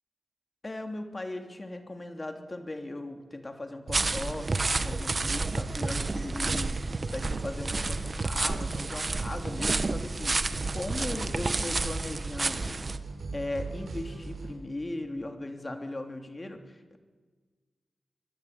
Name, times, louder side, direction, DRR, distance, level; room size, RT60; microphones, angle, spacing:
voice 1, 0.6-6.8 7.1-12.8 13.3-17.0, left 2 dB, 30° left, 5 dB, 3.2 m, -38 dB
sound 1, 3.9-13.0, right 3 dB, 40° right, 1.4 m, -30 dB
sound 2, 3.9-14.5, right 3 dB, 65° right, 7.2 m, -39 dB
25.0 x 22.5 x 9.6 m, 1.4 s
wide cardioid pair, 80°, 0 cm